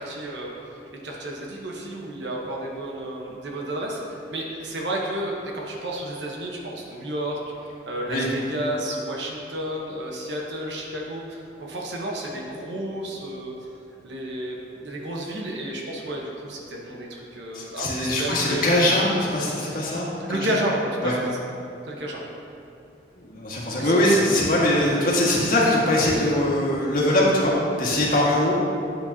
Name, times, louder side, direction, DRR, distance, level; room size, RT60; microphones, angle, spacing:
voice 1, 0.0-7.4 7.8-13.5 14.0-19.0 20.2-21.3 21.9-22.3 23.8-24.1 24.7-25.1, right 1 dB, 85° right, -2 dB, 1.1 m, -31 dB
voice 2, 17.5-20.5 21.0-21.1 23.1-27.5 27.8-28.5, left 1 dB, 50° left, -6 dB, 1.8 m, -22 dB
9.3 x 7.9 x 2.8 m, 2.6 s
head